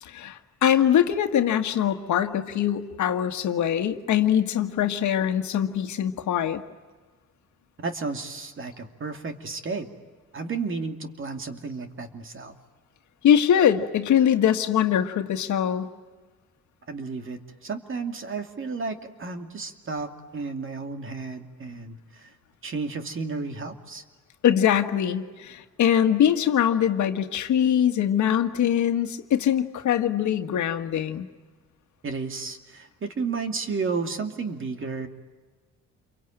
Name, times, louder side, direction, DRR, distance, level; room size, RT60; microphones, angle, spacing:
voice 1, 0.0-6.6 13.2-15.9 24.4-31.3, left 9 dB, 70° left, 7 dB, 1.6 m, -22 dB
voice 2, 7.8-9.9 10.3-12.5 16.9-22.3 22.6-24.0 32.0-35.1, right 4 dB, 40° right, 5 dB, 2.6 m, -32 dB
28.5 x 23.5 x 9.0 m, 1.4 s
cardioid pair, 90°, 30 cm